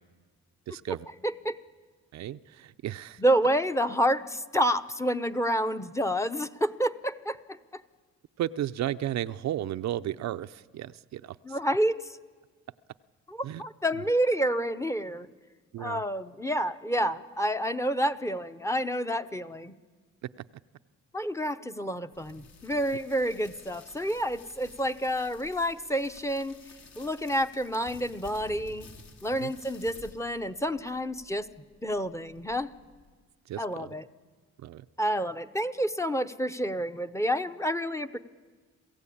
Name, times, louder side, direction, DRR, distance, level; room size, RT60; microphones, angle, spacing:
voice 1, 0.7-1.1 2.1-3.2 8.4-11.6 13.4-13.6 15.7-16.0 20.2-20.4 29.4-29.5 33.5-33.9 34.6-34.9, right 12 dB, 65° right, 12 dB, 0.6 m, -34 dB
voice 2, 1.2-1.6 3.2-7.8 11.4-12.2 13.3-15.3 15.8-19.7 21.1-26.6 27.0-28.9 29.2-31.5 31.8-32.7 33.6-34.0 35.0-38.2, equal, 10° left, 9 dB, 0.8 m, -29 dB
sound 1, 22.1-33.1, left 3 dB, 65° left, 3.5 m, -53 dB
27.0 x 16.0 x 8.6 m, 1.5 s
cardioid pair, 90°, 30 cm